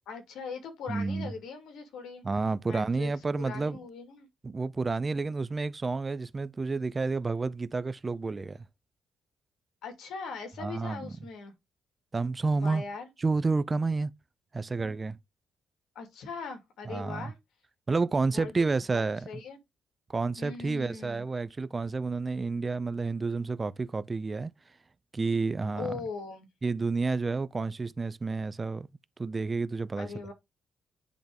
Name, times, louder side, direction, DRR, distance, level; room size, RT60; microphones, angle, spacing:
voice 1, 0.1-2.2 2.6-4.3 9.8-11.5 12.6-13.1 15.9-17.4 18.3-18.7 18.9-19.6 20.4-21.2 25.8-26.5 30.0-30.3, left 4 dB, 80° left, 2.4 m, -40 dB
voice 2, 0.9-1.3 2.2-3.8 4.4-8.6 10.6-11.1 12.1-12.8 13.2-14.1 14.5-15.2 16.9-17.3 17.9-19.3 20.1-24.5 25.1-26.0 26.6-28.9 29.2-30.1, right 3 dB, 25° right, 0.5 m, -30 dB
10.5 x 3.6 x 3.5 m
cardioid pair, 90°, 0 cm